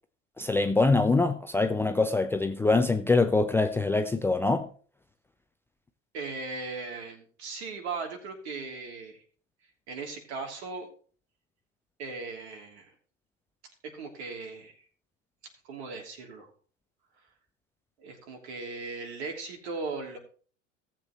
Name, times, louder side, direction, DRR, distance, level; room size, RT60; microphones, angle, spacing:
voice 1, 0.4-4.7, left 3 dB, 5° left, 0.5 m, -24 dB
voice 2, 6.1-9.2 9.9-10.9 12.0-12.9 13.9-14.8 15.6-16.5 18.0-20.2, right 4 dB, 60° right, 3.0 m, -38 dB
17.5 x 7.6 x 3.0 m
figure-of-eight pair, 80°, 37 cm